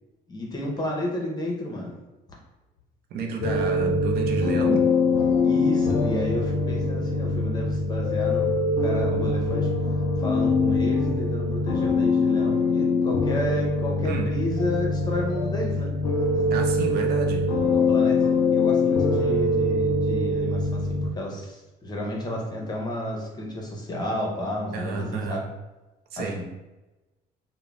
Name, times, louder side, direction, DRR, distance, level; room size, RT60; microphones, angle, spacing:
voice 1, 0.3-1.9 5.4-9.7 10.2-15.9 17.7-25.4 26.2-26.4, left 1 dB, 25° left, -1 dB, 0.7 m, -31 dB
voice 2, 3.1-4.9 14.0-14.3 16.5-17.4 24.7-25.4 26.1-26.4, right 4 dB, 65° right, 2 dB, 0.5 m, -30 dB
sound 1, 3.4-21.1, left 3 dB, 80° left, 0.4 m, -23 dB
2.4 x 2.1 x 3.1 m, 1.1 s
cardioid pair, 110°, 17 cm